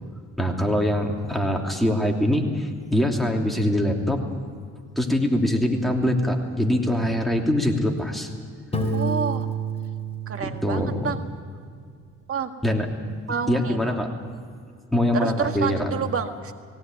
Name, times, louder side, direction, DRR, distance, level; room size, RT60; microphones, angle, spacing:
voice 1, 0.4-4.2 5.0-8.3 10.4-11.1 12.6-13.2 13.5-14.1 14.9-15.9, left 1 dB, ahead, 1 dB, 2.9 m, -23 dB
Piano, 8.7-11.5, right 3 dB, 20° left, 3.6 m, -29 dB
voice 2, 8.9-9.5 10.3-11.2 12.3-12.5 13.3-14.0 15.1-16.5, right 6 dB, 45° right, 6 dB, 1.9 m, -29 dB
18.5 x 17.5 x 9.2 m, 2.1 s
cardioid pair, 90°, 30 cm